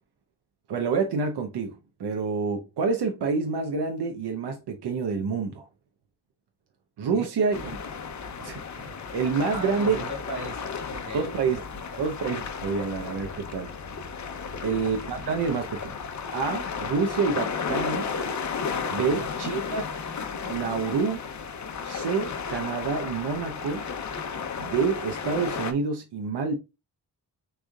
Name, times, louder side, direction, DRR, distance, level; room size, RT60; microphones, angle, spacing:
voice 1, 0.7-5.6 7.0-7.7 8.4-10.0 11.1-11.6 12.0-13.7 14.6-16.0 16.3-18.1 18.9-19.9 20.5-21.2 21.8-23.8 24.6-26.6, right 5 dB, 90° right, 0.9 m, -28 dB
Water in Qawra Malta, 7.5-25.7, left 5 dB, 45° left, 0.7 m, -34 dB
voice 2, 9.5-12.0 14.5-14.8 19.0-19.3, right 2 dB, 45° right, 2.5 m, -40 dB
6.3 x 3.5 x 2.3 m
wide cardioid pair, 145°, 39 cm